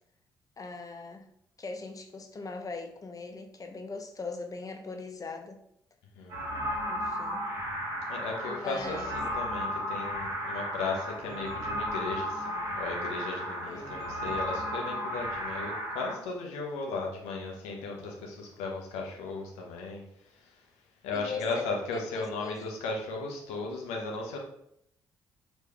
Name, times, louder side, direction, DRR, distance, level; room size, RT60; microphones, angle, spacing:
voice 1, 0.6-1.3 1.6-5.6 6.9-7.4 8.4-9.2 13.7-14.0 21.1-22.9, left 3 dB, 35° left, 5 dB, 0.5 m, -40 dB
sound 1, 6.3-16.1, equal, 75° right, 1.1 m, -34 dB
voice 2, 8.1-20.0 21.0-24.4, left 3 dB, 80° left, 0 dB, 0.7 m, -36 dB
3.4 x 3.0 x 2.3 m, 0.73 s
hypercardioid pair, 45°, 11 cm